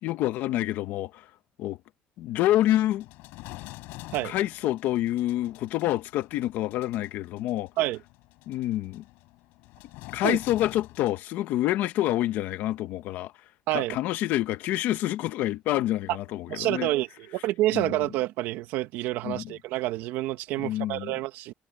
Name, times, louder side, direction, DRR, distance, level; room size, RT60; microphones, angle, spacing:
voice 1, 0.0-1.3 1.6-1.8 2.2-3.1 4.2-7.7 8.5-9.0 10.1-13.3 13.7-16.9 17.7-18.0 19.2-19.5 20.6-21.1, left 14 dB, 65° left, 1.3 m, -27 dB
sound 1, 2.6-11.2, left 21 dB, 85° left, 7.1 m, -47 dB
voice 2, 16.5-21.5, right 16 dB, 75° right, 1.7 m, -28 dB
cardioid pair, 170°, 3 cm